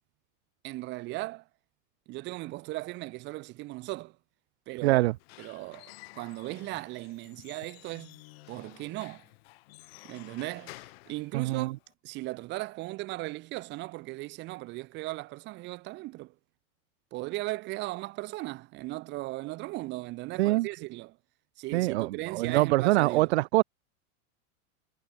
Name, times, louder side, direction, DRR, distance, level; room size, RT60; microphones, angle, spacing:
voice 1, 0.6-1.4 2.1-4.2 4.7-5.0 5.4-8.2 8.5-9.3 10.0-11.7 12.0-16.3 17.1-21.2 21.6-23.3, right 20 dB, 25° right, 1.2 m, -37 dB
voice 2, 4.8-5.1 11.3-11.8 20.4-20.7 21.7-23.6, right 19 dB, 50° right, 0.5 m, -24 dB
Squeak / Wood, 5.0-11.9, left 22 dB, 45° left, 1.3 m, -52 dB
supercardioid pair, 170°, 43 cm